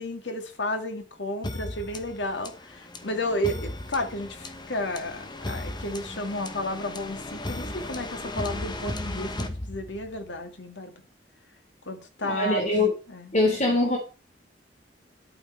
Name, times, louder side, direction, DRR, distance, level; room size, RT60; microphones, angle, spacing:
voice 1, 0.0-10.9 11.9-12.6 13.1-13.3, left 1 dB, 80° left, 2.2 m, -32 dB
sound 1, 1.4-10.3, left 1 dB, 25° left, 1.2 m, -36 dB
voice 2, 12.2-12.9 13.3-14.0, left 2 dB, 40° left, 3.2 m, -22 dB
11.0 x 8.8 x 4.4 m
head